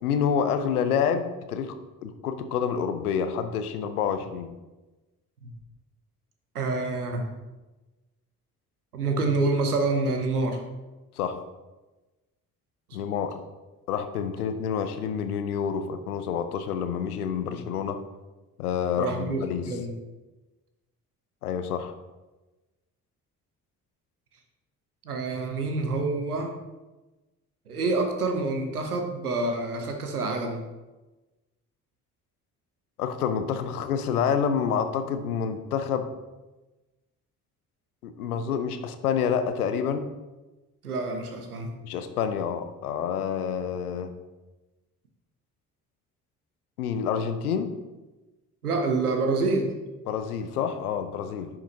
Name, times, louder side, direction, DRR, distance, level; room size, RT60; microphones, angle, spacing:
voice 1, 0.0-1.7 2.0-4.5 11.2-11.4 12.9-13.4 13.9-18.0 18.6-19.7 21.4-21.9 33.0-36.1 38.0-40.1 41.8-44.1 46.8-47.8 50.1-51.5, left 7 dB, 85° left, 9 dB, 0.6 m, -28 dB
voice 2, 6.5-7.3 8.9-10.6 12.9-13.0 17.4-17.6 19.0-19.9 25.0-26.6 27.7-30.6 40.8-41.7 48.6-49.7, right 3 dB, 90° right, 5 dB, 0.7 m, -27 dB
10.5 x 5.7 x 2.7 m, 1.1 s
figure-of-eight pair, 40°, 44 cm